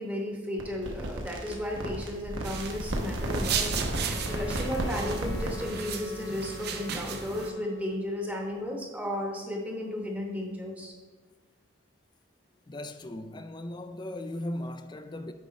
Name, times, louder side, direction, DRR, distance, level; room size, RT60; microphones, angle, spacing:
voice 1, 0.0-3.7 4.3-10.9, left 1 dB, 10° right, 1.0 m, -34 dB
sound 1, 0.6-5.7, right 1 dB, 80° right, 1.0 m, -33 dB
sound 2, 2.4-7.5, right 7 dB, 55° right, 0.6 m, -36 dB
Wind instrument woodwind instrument, 4.0-8.1, left 3 dB, 75° left, 1.0 m, -43 dB
voice 2, 12.7-15.3, left 1 dB, 20° left, 0.3 m, -37 dB
9.1 x 3.6 x 5.1 m
head